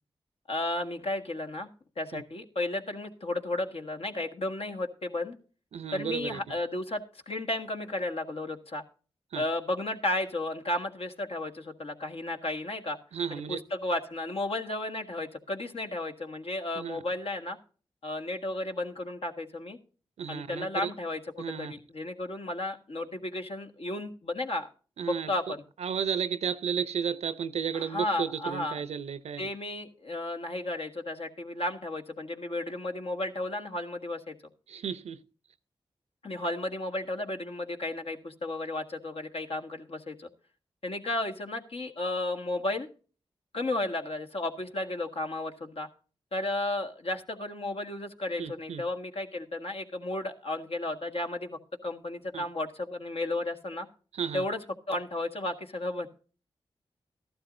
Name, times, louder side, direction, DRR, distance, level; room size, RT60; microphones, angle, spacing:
voice 1, 0.5-1.7 2.0-5.4 5.9-8.8 9.4-13.0 13.3-17.6 18.0-19.8 20.3-24.7 25.0-25.6 27.7-28.8 29.4-34.4 36.2-40.3 40.8-42.9 43.5-45.9 46.3-53.9 54.3-54.6 54.9-56.1, left 2 dB, 65° left, 1.7 m, -33 dB
voice 2, 5.7-6.4 9.3-9.4 13.1-13.6 16.7-17.0 20.2-20.9 21.4-21.7 25.0-25.3 25.8-29.5 34.7-35.2 48.4-48.8 52.3-52.4 54.1-54.4, right 7 dB, 85° right, 0.6 m, -33 dB
14.0 x 12.0 x 2.6 m
cardioid pair, 40°, 11 cm